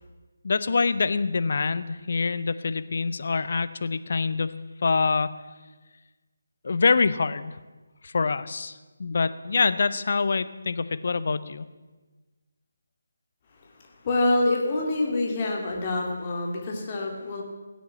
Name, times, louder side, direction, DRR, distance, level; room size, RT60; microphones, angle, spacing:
voice 1, 0.4-4.5 4.8-5.3 6.6-7.6 8.0-11.7, left 4 dB, 50° left, 14 dB, 0.7 m, -25 dB
voice 2, 14.0-17.4, left 2 dB, 30° left, 0 dB, 2.5 m, -26 dB
16.5 x 8.5 x 7.5 m, 1.2 s
figure-of-eight pair, 155°, 0 cm